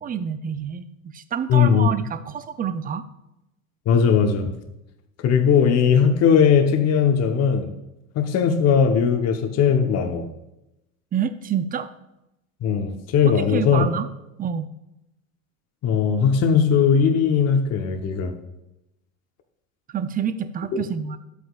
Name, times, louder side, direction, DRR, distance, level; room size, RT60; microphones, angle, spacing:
voice 1, 0.0-0.9 1.1-3.0 11.1-11.9 13.2-14.1 14.4-14.7 19.9-21.2, right 7 dB, 20° right, 12 dB, 0.5 m, -27 dB
voice 2, 1.5-1.9 3.9-4.5 5.2-7.7 8.1-10.3 12.6-13.9 15.8-18.3, left 7 dB, 40° left, 5 dB, 1.0 m, -19 dB
11.0 x 8.2 x 2.5 m, 0.89 s
hypercardioid pair, 85°, 40 cm